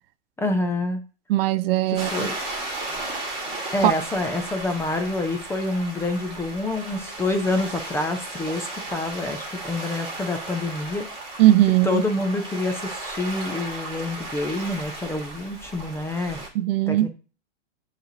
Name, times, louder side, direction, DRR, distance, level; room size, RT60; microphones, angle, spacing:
voice 1, 0.4-1.0 1.9-2.4 3.7-11.0 11.8-16.4 16.9-17.1, left 2 dB, 10° left, 0.4 m, -27 dB
voice 2, 1.3-2.3 3.8-3.9 11.4-12.0 16.5-17.1, right 15 dB, 55° right, 0.4 m, -19 dB
sound 1, 2.0-16.5, right 2 dB, 15° right, 2.3 m, -35 dB
7.8 x 3.2 x 3.9 m
hypercardioid pair, 115°, 35 cm